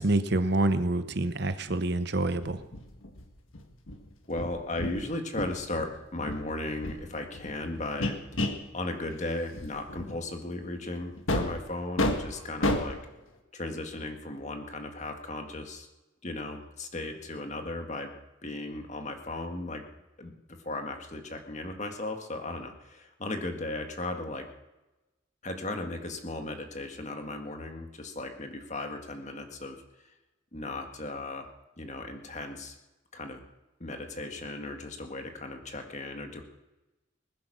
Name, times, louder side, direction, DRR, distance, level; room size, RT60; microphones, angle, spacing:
voice 1, 0.0-2.6, right 2 dB, 55° right, 11 dB, 0.8 m, -27 dB
sound 1, 2.4-5.0 5.4-5.9 6.2-8.7 9.1-9.2 9.5-10.2 11.2-11.6 12.0-13.0, left 1 dB, 80° left, 1.7 m, -32 dB
voice 2, 4.3-8.2 8.7-13.0 13.5-15.9 16.2-18.1 18.4-19.8 20.2-20.3 20.6-24.4 25.4-29.8 30.5-31.4 31.8-32.8 33.1-33.4 33.8-36.4, left 2 dB, 35° left, 5 dB, 1.8 m, -36 dB
20.0 x 10.0 x 6.3 m, 1.0 s
head